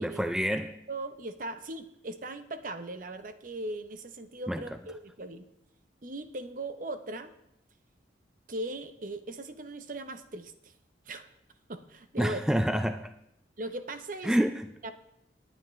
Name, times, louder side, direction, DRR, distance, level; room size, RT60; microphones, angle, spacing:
voice 1, 0.0-0.8 4.5-4.6 12.2-13.1 14.2-14.7, equal, 5° right, 8 dB, 0.3 m, -28 dB
voice 2, 0.9-5.4 6.0-7.3 8.5-10.7 11.1-11.3 11.7-12.4 13.6-14.4 14.8-14.9, right 2 dB, 50° right, 10 dB, 0.8 m, -39 dB
19.0 x 9.2 x 3.2 m, 0.84 s
head